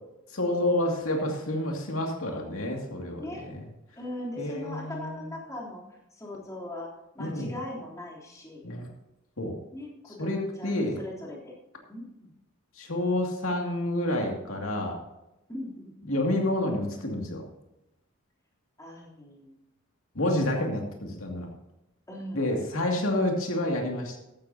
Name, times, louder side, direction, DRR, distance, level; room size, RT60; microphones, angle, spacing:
voice 1, 0.3-3.6 4.4-5.3 7.2-7.5 8.6-8.9 9.4-9.5 10.2-11.0 12.8-15.0 16.0-17.4 20.1-21.5 22.3-24.2, left 1 dB, 75° left, 1 dB, 2.4 m, -29 dB
voice 2, 3.1-3.4 3.9-6.9 7.1-8.6 9.7-11.5 11.9-12.3 15.5-15.9 18.8-19.6 22.1-22.7, left 1 dB, 15° left, -5 dB, 3.4 m, -40 dB
15.0 x 12.0 x 2.9 m, 0.91 s
head